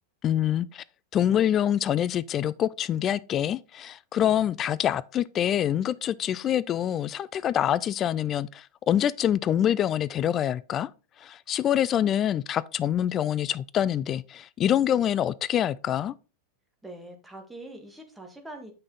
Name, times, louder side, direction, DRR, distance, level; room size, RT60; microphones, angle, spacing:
voice 1, 0.2-0.8 1.1-10.9 11.2-16.1, left 10 dB, 30° left, 0.3 m, -25 dB
voice 2, 16.8-18.7, right 1 dB, 5° right, 1.8 m, -43 dB
7.6 x 6.1 x 3.9 m
figure-of-eight pair, 90°, 0 cm